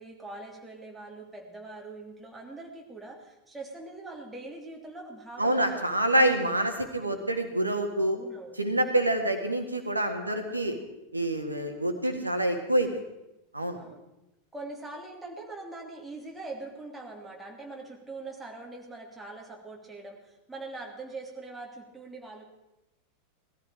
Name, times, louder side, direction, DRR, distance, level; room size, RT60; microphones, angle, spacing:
voice 1, 0.0-5.8 8.0-8.5 10.1-10.7 13.7-14.0 14.5-22.4, right 2 dB, 5° right, -2 dB, 3.1 m, -43 dB
voice 2, 5.4-8.2 8.6-10.8 11.1-12.9 13.5-13.8, right 1 dB, 85° right, 6 dB, 1.8 m, -26 dB
18.5 x 13.5 x 4.9 m, 0.94 s
figure-of-eight pair, 85°, 0 cm